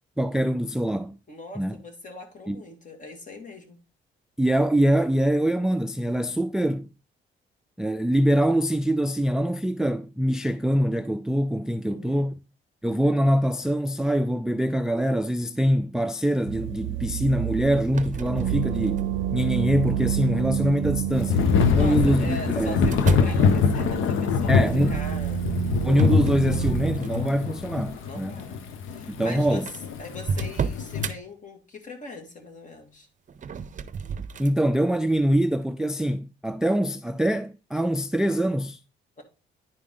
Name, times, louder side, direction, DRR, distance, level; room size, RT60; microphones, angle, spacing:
voice 1, 0.2-1.2 1.6-1.8 2.5-2.6 4.4-6.9 7.8-12.3 12.8-19.1 19.3-21.5 21.8-22.8 24.5-24.9 25.8-28.4 29.1-29.7 34.4-38.8, equal, 5° right, 0.3 m, -24 dB
voice 2, 1.3-3.8 11.9-12.3 21.8-25.5 28.0-29.7 30.0-33.1 39.2-39.3, left 2 dB, 40° left, 2.2 m, -41 dB
sound 1, 16.5-27.0, right 11 dB, 80° right, 0.5 m, -29 dB
sound 2, 17.9-19.3 20.0-20.4 21.5-23.4 25.9-27.5 27.9-28.2 28.9-29.0 29.2-29.3 29.7-31.2 33.3-34.6, right 6 dB, 40° right, 0.6 m, -32 dB
Thunder / Rain, 21.3-31.1, left 6 dB, 80° left, 0.9 m, -24 dB
10.0 x 4.8 x 3.8 m
cardioid pair, 90°, 20 cm